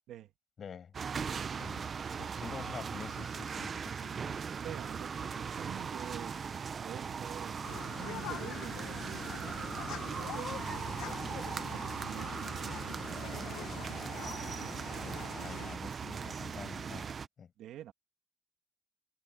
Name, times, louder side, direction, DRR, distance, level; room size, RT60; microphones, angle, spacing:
voice 1, 0.6-0.9 1.5-4.4 14.9-17.0 17.4-17.5, left 7 dB, 35° left, 7.6 m, -47 dB
sound 1, 0.9-17.3, right 6 dB, 30° right, 0.6 m, -39 dB
voice 2, 4.6-9.6 9.9-11.1 11.4-13.1 17.6-17.9, right 12 dB, 65° right, 2.6 m, -48 dB
sound 2, 7.6-15.8, left 13 dB, 70° left, 0.9 m, -45 dB
cardioid pair, 150°, 0 cm